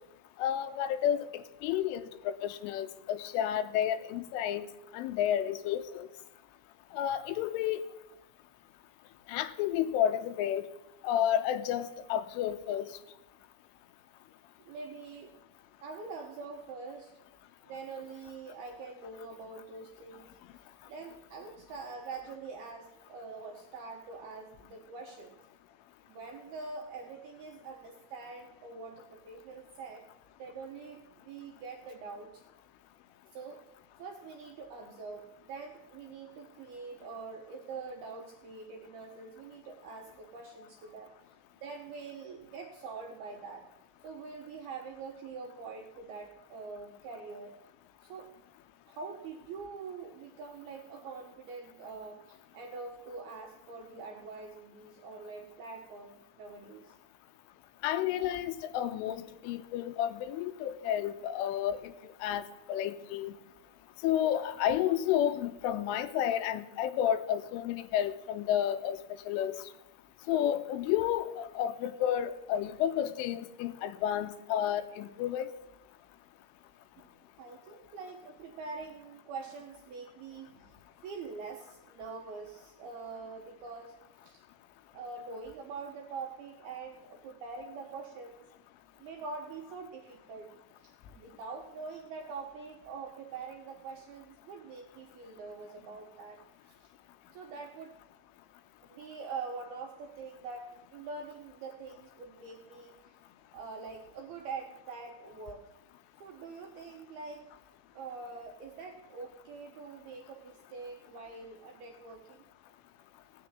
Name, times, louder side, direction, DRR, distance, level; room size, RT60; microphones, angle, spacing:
voice 1, 0.4-4.7 4.9-6.1 6.9-7.8 9.3-10.6 11.0-12.9 57.8-62.4 62.7-63.3 64.0-69.0 69.3-69.5 70.3-75.5, left 10 dB, 80° left, 10 dB, 3.1 m, -31 dB
voice 2, 14.7-15.3 15.8-17.1 17.7-25.3 26.1-30.1 30.4-32.4 33.3-33.7 34.0-43.7 44.0-47.6 48.0-48.3 48.9-57.0 77.0-84.0 84.2-84.4 84.9-88.5 89.0-96.9 97.3-97.9 98.9-103.1 103.5-105.6 106.2-107.4 107.9-112.4, right 4 dB, 70° right, 1 dB, 2.4 m, -44 dB
17.0 x 6.9 x 9.6 m, 0.91 s
omnidirectional pair, 5.9 m